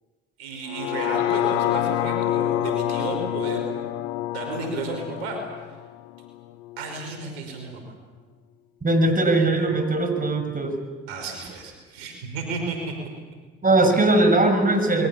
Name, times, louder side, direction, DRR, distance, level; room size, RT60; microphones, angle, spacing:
voice 1, 0.4-3.7 4.3-5.4 6.8-7.8 11.1-12.9, right 3 dB, 85° right, 4 dB, 5.5 m, -32 dB
sound 1, 0.7-6.8 7.3-7.4, left 13 dB, 80° left, 1.0 m, -27 dB
voice 2, 8.8-10.8 13.6-15.1, right 2 dB, 30° right, 7 dB, 6.1 m, -20 dB
28.0 x 22.5 x 7.2 m, 1.3 s
hypercardioid pair, 60°, 30 cm